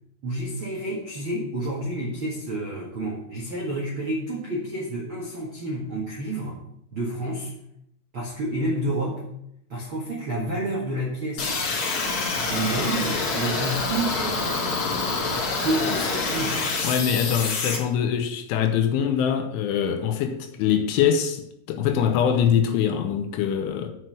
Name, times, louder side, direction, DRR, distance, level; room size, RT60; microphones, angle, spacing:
voice 1, 0.2-6.6 6.9-7.5 8.1-9.2 9.7-11.6 12.5-14.6 15.6-16.7, right 1 dB, 90° right, 1.1 m, -29 dB
sound 1, 11.4-17.8, left 4 dB, 60° left, 1.9 m, -26 dB
voice 2, 16.8-21.4 21.7-23.9, left 8 dB, 80° left, 3.2 m, -23 dB
7.9 x 5.7 x 7.7 m
omnidirectional pair, 5.7 m